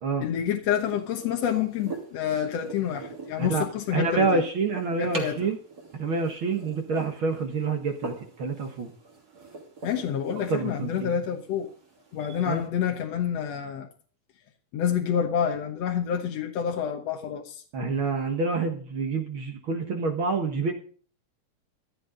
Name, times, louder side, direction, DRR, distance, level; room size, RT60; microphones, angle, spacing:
voice 1, 0.2-4.4 5.0-5.5 9.8-11.7 12.1-13.9 14.7-17.6, left 8 dB, 60° left, 2.0 m, -28 dB
sound 1, 0.8-12.7, right 3 dB, 30° right, 3.3 m, -43 dB
voice 2, 3.9-5.6 5.9-8.9 10.5-11.1 12.5-12.6 17.7-20.7, right 4 dB, 50° right, 1.7 m, -27 dB
15.5 x 11.0 x 3.8 m
omnidirectional pair, 3.8 m